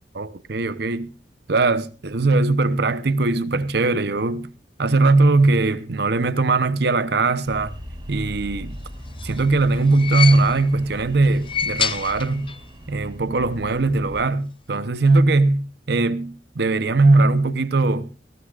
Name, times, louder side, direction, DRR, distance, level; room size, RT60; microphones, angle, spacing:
voice 1, 0.1-1.1 1.5-4.5 4.8-7.7 8.1-8.8 9.2-12.5 12.9-18.1, right 3 dB, 65° right, 0.9 m, -20 dB
sound 1, 7.4-14.3, equal, 25° right, 3.8 m, -39 dB
sound 2, 8.9-10.8 11.3-12.7 13.0-13.1 14.2-14.3, left 7 dB, 30° left, 0.7 m, -28 dB
19.5 x 17.0 x 2.5 m
head